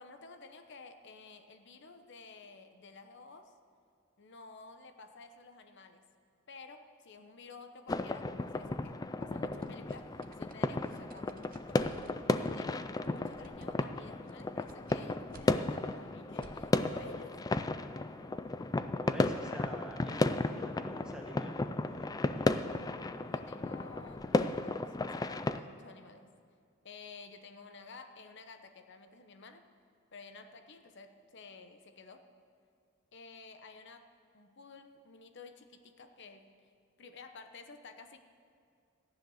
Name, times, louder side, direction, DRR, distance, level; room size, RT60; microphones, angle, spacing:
voice 1, 0.0-3.5 4.2-6.0 6.5-11.3 11.7-17.4 23.3-26.3 26.8-29.6 30.1-32.3 33.1-36.5 37.0-38.2, left 4 dB, 55° left, 8 dB, 0.9 m, -52 dB
sound 1, 7.9-25.6, left 2 dB, 20° left, 0.3 m, -34 dB
sound 2, 9.6-16.7, right 2 dB, 40° right, 0.8 m, -58 dB
voice 2, 19.0-22.7, equal, 5° right, 1 dB, 1.1 m, -47 dB
14.5 x 10.5 x 6.4 m, 2.3 s
head